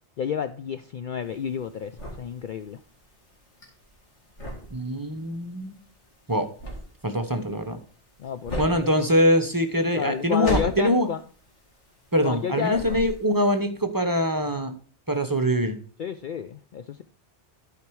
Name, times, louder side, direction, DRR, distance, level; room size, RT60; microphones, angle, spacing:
voice 1, 0.2-2.8 8.2-9.0 9.9-11.2 12.2-12.8 16.0-17.0, left 8 dB, 60° left, 10 dB, 0.5 m, -30 dB
sound 1, 1.2-12.4 12.7-13.5, equal, 85° left, 2.9 m, -36 dB
voice 2, 4.7-5.8 6.3-6.5 7.0-7.8 8.6-11.1 12.1-14.7 15.1-15.8, equal, 20° right, 7 dB, 0.9 m, -23 dB
12.0 x 5.0 x 4.6 m, 0.43 s
omnidirectional pair, 1.2 m